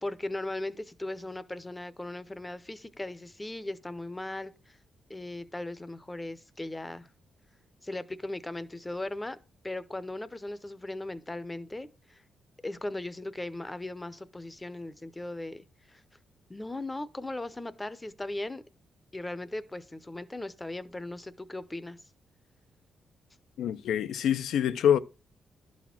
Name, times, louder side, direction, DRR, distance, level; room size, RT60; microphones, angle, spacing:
voice 1, 0.0-4.8 5.1-7.1 7.8-9.4 9.6-12.2 12.6-16.0 16.5-18.6 19.1-22.0, left 2 dB, 10° left, 0.6 m, -38 dB
voice 2, 23.6-25.0, left 9 dB, 90° left, 0.5 m, -25 dB
12.0 x 4.2 x 5.8 m
wide cardioid pair, 160°, 0 cm